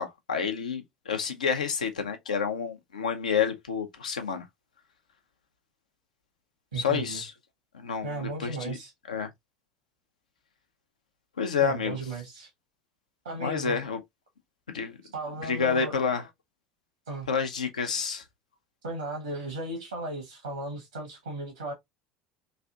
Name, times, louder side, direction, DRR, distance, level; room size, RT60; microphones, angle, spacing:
voice 1, 0.0-4.5 6.7-7.3 7.7-8.8 9.1-9.3 11.4-12.0 13.4-14.0 14.7-15.0 15.4-16.2 17.3-18.2, left 6 dB, 75° left, 0.6 m, -29 dB
voice 2, 6.7-7.2 8.0-8.9 11.6-12.5 13.2-13.8 15.1-16.0 17.1-17.3 18.8-21.7, right 2 dB, 75° right, 1.0 m, -35 dB
3.2 x 2.5 x 2.5 m
figure-of-eight pair, 65°, 4 cm